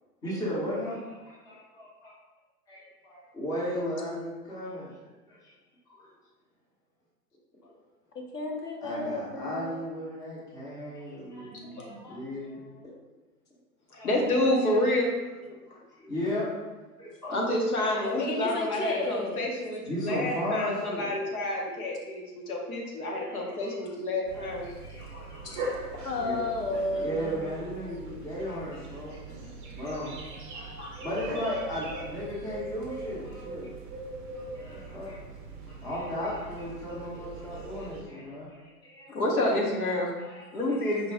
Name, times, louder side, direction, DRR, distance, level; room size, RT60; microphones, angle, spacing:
voice 1, 0.2-1.9 2.7-4.9 5.3-5.5 5.9-6.1 8.8-12.7 13.9-14.7 15.7-16.5 17.0-17.4 17.9-18.0 19.9-21.6 23.1-23.7 24.3-24.4 24.8-25.7 26.2-26.4 26.9-29.2 29.7-30.7 31.0-33.7 34.5-35.2 35.6-39.1 40.2-40.8 41.0-41.1, left 1 dB, 10° left, -7 dB, 0.7 m, -36 dB
voice 2, 8.3-9.7 18.0-19.5 25.4-25.6 26.1-27.4, left 2 dB, 85° left, 0 dB, 0.8 m, -32 dB
voice 3, 11.6-12.0 13.9-15.1 15.4-15.6 17.3-24.7 30.8-31.0 39.1-40.1 40.5-41.1, left 1 dB, 65° left, -1 dB, 1.1 m, -29 dB
sound 1, 24.2-38.0, right 2 dB, 35° right, 0.6 m, -41 dB
4.8 x 2.2 x 3.5 m, 1.2 s
figure-of-eight pair, 105°, 47 cm